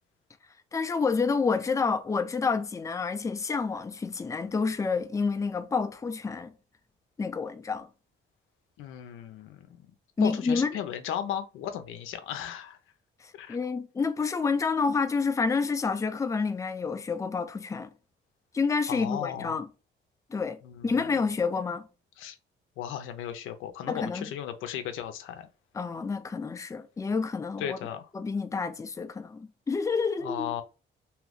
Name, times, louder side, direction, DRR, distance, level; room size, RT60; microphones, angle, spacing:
voice 1, 0.7-6.5 7.2-7.9 10.2-10.8 13.2-17.9 18.5-19.7 20.3-21.9 23.9-24.2 25.7-27.8 28.1-30.5, left 4 dB, 15° left, 0.4 m, -29 dB
voice 2, 8.8-9.9 10.2-12.8 13.3-13.6 18.9-19.6 20.6-21.0 22.2-22.4 22.8-25.5 27.6-28.1 30.2-30.6, left 9 dB, 90° left, 0.5 m, -36 dB
2.7 x 2.5 x 3.3 m
cardioid pair, 90°, 20 cm